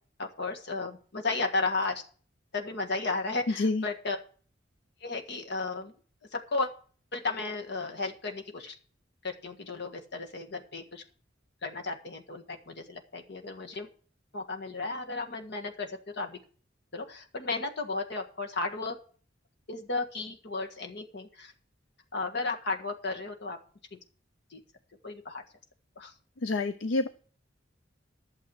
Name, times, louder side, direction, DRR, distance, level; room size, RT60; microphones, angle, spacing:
voice 1, 0.2-2.0 2.5-4.2 5.0-5.9 6.3-6.7 7.1-8.8 9.2-11.0 11.6-13.9 14.3-16.4 16.9-19.0 19.7-21.5 22.1-23.6 23.9-24.0 24.5-24.6 25.0-25.4 26.0-26.1, left 3 dB, 65° left, 4 dB, 1.6 m, -34 dB
voice 2, 26.4-27.1, left 3 dB, 80° left, 11 dB, 0.6 m, -27 dB
12.0 x 7.1 x 6.3 m, 0.43 s
head